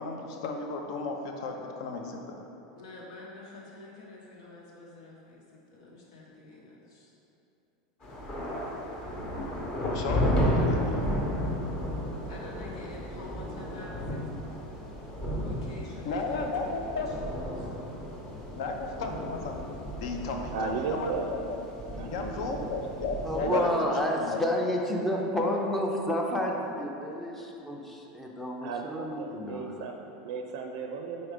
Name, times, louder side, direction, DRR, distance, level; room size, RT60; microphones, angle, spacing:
voice 1, 0.0-2.4 9.8-11.0 16.0-17.1 18.5-19.6 20.0-21.6 21.8-24.4, left 3 dB, 65° left, 3 dB, 0.7 m, -34 dB
voice 2, 2.7-7.1 10.6-10.8 12.2-14.2 15.4-17.7, left 2 dB, 85° left, -4 dB, 1.5 m, -47 dB
sound 1, 8.0-23.4, equal, 25° left, 0.9 m, -33 dB
voice 3, 20.5-21.4 21.9-22.7 23.4-23.9 28.6-31.3, right 5 dB, 65° right, 3 dB, 0.4 m, -34 dB
voice 4, 23.3-29.9, left 1 dB, 5° left, 0 dB, 0.5 m, -30 dB
4.7 x 4.2 x 5.0 m, 2.9 s
supercardioid pair, 165°, 3 cm